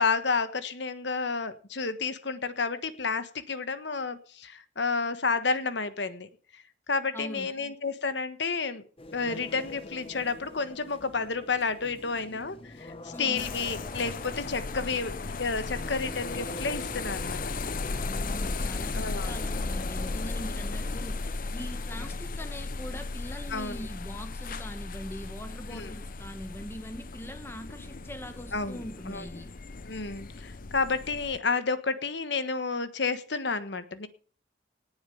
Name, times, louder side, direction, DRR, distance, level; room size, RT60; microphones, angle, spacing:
voice 1, 0.0-8.8 9.1-15.1 15.4-17.5 18.9-19.4 23.5-23.8 25.7-25.9 28.5-29.2 29.9-34.1, left 4 dB, 65° left, 1.3 m, -31 dB
voice 2, 7.1-7.5 13.1-13.5 18.0-21.2 21.5-29.5, equal, 10° left, 1.5 m, -42 dB
sound 1, 9.0-22.2, left 1 dB, 30° left, 1.1 m, -44 dB
sound 2, 13.4-31.4, left 3 dB, 45° left, 0.8 m, -36 dB
18.5 x 7.2 x 7.0 m
head